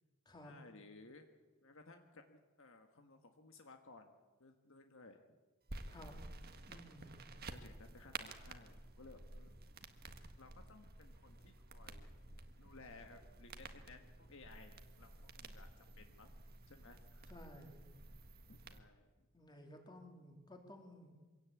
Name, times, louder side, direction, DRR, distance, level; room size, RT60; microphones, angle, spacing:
voice 1, 0.4-1.3 1.6-5.4 7.5-9.6 10.4-12.1 12.6-16.3 16.7-17.4 18.5-19.1, left 3 dB, 60° left, 5 dB, 1.6 m, -59 dB
sound 1, 5.7-18.8, right 3 dB, 45° right, 1.6 m, -52 dB
voice 2, 6.7-7.2 17.3-17.8 19.3-21.1, left 1 dB, 20° left, 3 dB, 3.2 m, -55 dB
24.5 x 17.0 x 8.5 m, 1.3 s
head